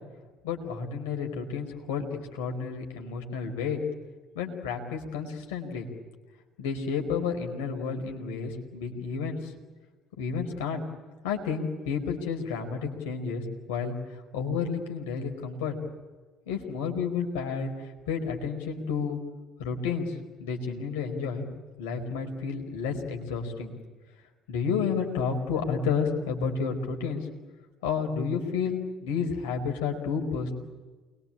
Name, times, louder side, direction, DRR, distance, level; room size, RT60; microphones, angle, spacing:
voice 1, 0.4-3.8 4.3-5.9 6.6-9.5 10.2-10.8 11.2-13.4 13.7-13.9 14.3-15.8 16.5-19.2 19.6-20.1 20.4-21.5 21.8-23.7 24.5-27.3 27.8-30.6, left 5 dB, 70° left, 3 dB, 4.6 m, -31 dB
29.0 x 22.5 x 8.9 m, 1.3 s
figure-of-eight pair, 55°, 0 cm